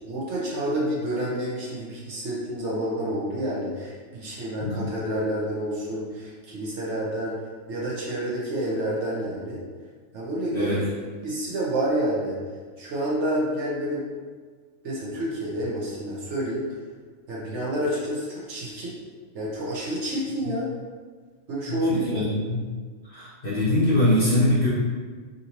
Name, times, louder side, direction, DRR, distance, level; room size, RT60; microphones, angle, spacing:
voice 1, 0.0-7.4 7.7-9.6 10.1-10.8 11.2-12.4 12.8-14.0 14.8-16.7 17.3-19.0 19.3-20.7 21.5-22.3, right 1 dB, 60° right, -5 dB, 1.0 m, -29 dB
voice 2, 4.6-4.9 10.5-10.8 21.7-22.6 23.0-24.7, left 1 dB, 50° left, -9 dB, 0.9 m, -23 dB
3.8 x 2.7 x 2.9 m, 1.5 s
omnidirectional pair, 1.4 m